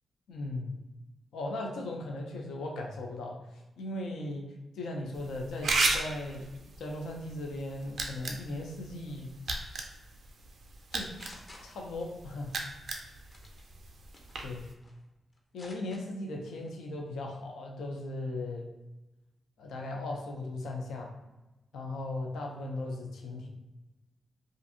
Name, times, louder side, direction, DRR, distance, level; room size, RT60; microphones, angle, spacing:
voice 1, 0.3-0.8 1.3-4.5 4.7-6.5 6.8-9.3 10.9-11.1 11.6-12.6 14.4-14.7 15.5-18.7 19.6-21.1 21.7-23.5, left 2 dB, 85° left, 0 dB, 0.4 m, -37 dB
sound 1, 5.1-14.7, right 3 dB, 70° right, 0.4 m, -36 dB
sound 2, 10.8-12.2 12.5-12.8 13.3-13.6 14.1-15.0 15.3-16.0 16.4-16.7, left 1 dB, 35° left, 0.6 m, -52 dB
2.5 x 2.4 x 2.6 m, 1.0 s
supercardioid pair, 50°, 0 cm